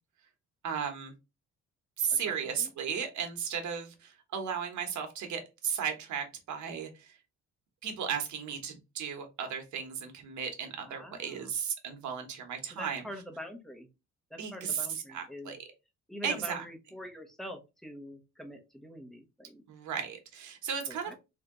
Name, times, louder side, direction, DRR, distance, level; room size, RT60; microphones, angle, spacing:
voice 1, 0.6-1.1 2.0-6.9 7.8-13.0 14.4-15.6 16.2-16.6 19.7-21.2, right 7 dB, 70° right, 4 dB, 1.1 m, -35 dB
voice 2, 2.1-2.7 10.8-11.5 12.7-13.9 14.3-15.6 16.1-19.6 20.9-21.2, equal, ahead, 4 dB, 1.0 m, -45 dB
3.3 x 2.8 x 3.7 m, 0.26 s
cardioid pair, 90°, 30 cm